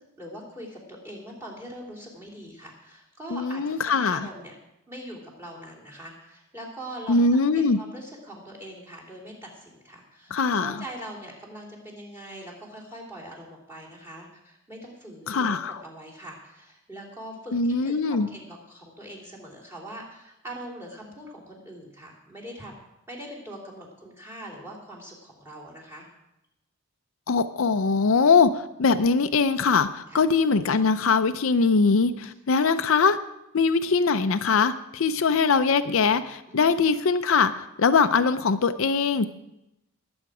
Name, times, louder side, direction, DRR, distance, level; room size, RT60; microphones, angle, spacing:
voice 1, 0.2-4.5 4.9-7.2 7.5-22.8 23.1-26.1 30.1-30.2 32.6-32.8 36.5-36.8, equal, 10° right, -2 dB, 3.0 m, -42 dB
voice 2, 3.3-4.2 7.1-7.8 10.3-10.8 15.3-15.8 17.5-18.3 27.3-33.2 33.5-39.3, left 4 dB, 65° left, 10 dB, 0.5 m, -22 dB
20.5 x 8.0 x 4.9 m, 0.88 s
head